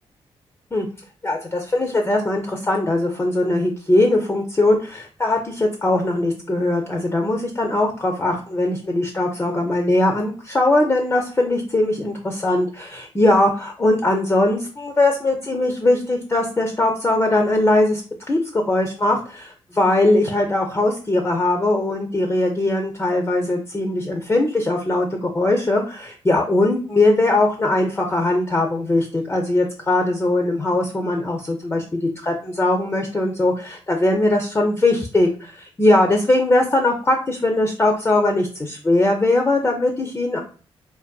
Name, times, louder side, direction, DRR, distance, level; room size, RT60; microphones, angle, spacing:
voice 1, 1.2-18.0 18.3-40.4, left 2 dB, 20° left, 2 dB, 0.4 m, -20 dB
2.5 x 2.1 x 2.2 m, 0.38 s
cardioid pair, 60°, 11 cm